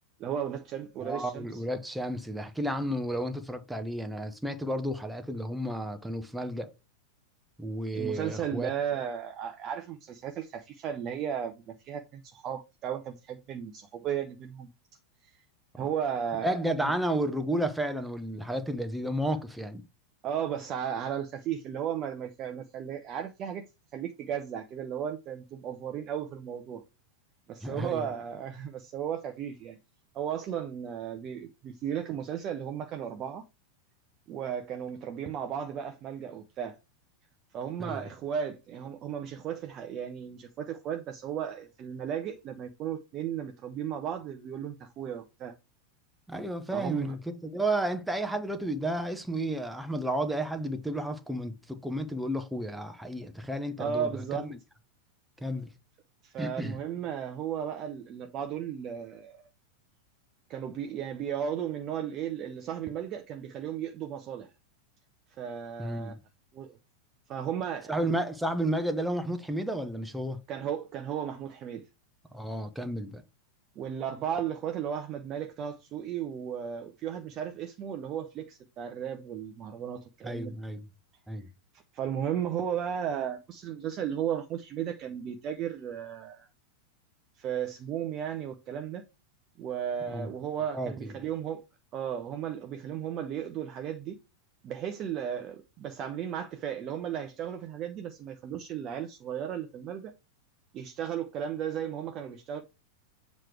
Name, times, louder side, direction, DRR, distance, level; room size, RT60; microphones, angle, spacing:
voice 1, 0.2-1.6 7.9-14.7 15.7-16.9 20.2-23.6 23.9-26.8 27.5-29.8 30.1-33.4 34.3-36.8 37.5-45.5 46.7-47.1 53.8-54.4 56.2-59.5 60.5-64.5 65.4-66.1 66.5-66.8 67.3-67.9 70.5-71.8 73.8-80.5 81.9-86.5 87.4-89.0 89.6-91.6 91.9-94.2 94.6-100.1 100.7-102.6, right 9 dB, 35° right, 0.6 m, -35 dB
voice 2, 1.0-6.7 7.6-8.7 16.4-19.8 27.6-28.1 37.8-38.0 46.3-54.6 55.4-55.7 56.4-56.8 65.8-66.2 67.9-70.4 72.3-73.2 80.2-80.9 81.3-81.5 90.1-90.3 90.7-91.1, right 1 dB, 5° right, 0.8 m, -32 dB
7.5 x 3.1 x 4.7 m
figure-of-eight pair, 90°, 0 cm